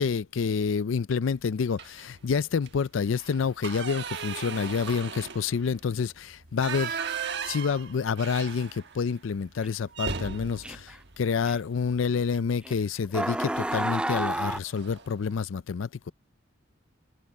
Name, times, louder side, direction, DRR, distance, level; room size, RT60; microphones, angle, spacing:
voice 1, 0.0-7.0 7.5-16.1, left 5 dB, 70° left, 0.4 m, -28 dB
sound 1, 1.7-2.2 2.5-2.7 3.1-9.1 9.4-9.5 9.9-12.1 13.4-13.7 14.1-14.2 14.5-15.1, right 6 dB, 60° right, 1.3 m, -37 dB
sound 2, 9.6-9.7 10.6-11.0 11.5-11.6 12.6-12.7 13.1-14.6, right 1 dB, 5° right, 0.3 m, -30 dB
head